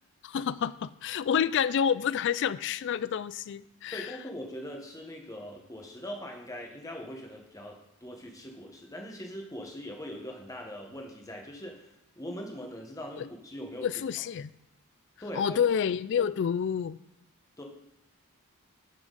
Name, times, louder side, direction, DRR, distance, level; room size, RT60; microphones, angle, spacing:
voice 1, 0.2-4.1 13.2-13.3 13.8-14.5 15.3-17.0, left 8 dB, 55° left, 17 dB, 0.3 m, -28 dB
voice 2, 3.9-14.0 15.2-15.6 17.6-17.7, equal, 15° left, 1 dB, 1.3 m, -41 dB
11.5 x 6.0 x 4.0 m, 0.88 s
head